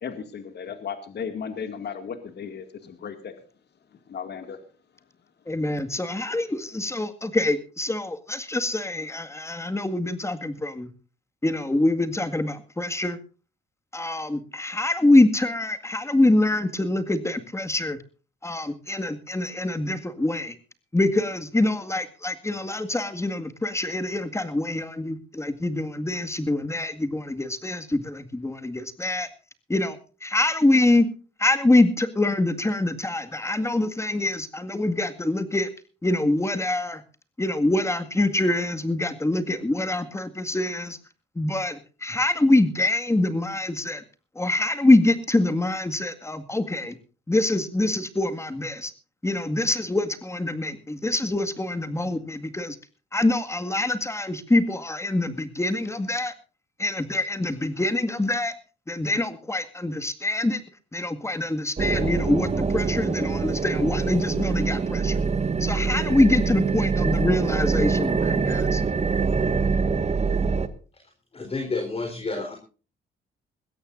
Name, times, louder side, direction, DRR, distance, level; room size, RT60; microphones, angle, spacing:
voice 1, 0.0-3.4 4.1-4.6, left 7 dB, 60° left, 8 dB, 2.2 m, -35 dB
voice 2, 5.5-10.9 11.4-13.2 13.9-18.0 18.4-20.5 20.9-29.3 29.7-30.0 30.2-31.1 31.4-35.7 36.0-37.0 37.4-41.0 41.4-44.0 44.4-46.9 47.3-48.9 49.2-52.8 53.1-56.3 56.8-58.5 58.9-60.6 60.9-65.2 65.6-68.8, left 2 dB, 15° left, 9 dB, 1.9 m, -24 dB
sound 1, 61.8-70.7, right 5 dB, 35° right, 1.7 m, -24 dB
voice 3, 71.3-72.6, left 3 dB, 30° left, 4 dB, 4.2 m, -30 dB
21.0 x 16.0 x 2.6 m, 0.36 s
cardioid pair, 90°, 20 cm